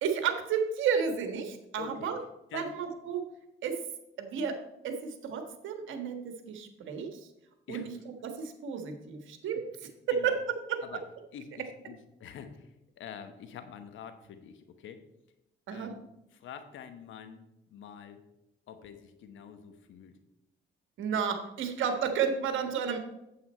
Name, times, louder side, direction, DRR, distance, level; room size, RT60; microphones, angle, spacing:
voice 1, 0.0-2.2 2.5-3.3 3.6-3.8 4.2-4.6 4.8-7.3 7.7-7.8 8.2-9.7 10.1-10.4 10.7-10.8 15.7-15.9 21.0-23.0, right 7 dB, 80° right, 6 dB, 1.4 m, -32 dB
voice 2, 1.8-2.1 2.5-2.7 7.7-7.9 9.5-9.7 10.1-10.4 10.8-11.0 11.3-15.0 15.7-16.0 16.3-17.4 17.7-18.2 18.7-20.2, left 8 dB, 75° left, 9 dB, 1.1 m, -46 dB
8.6 x 7.7 x 4.3 m, 0.92 s
cardioid pair, 90°, 20 cm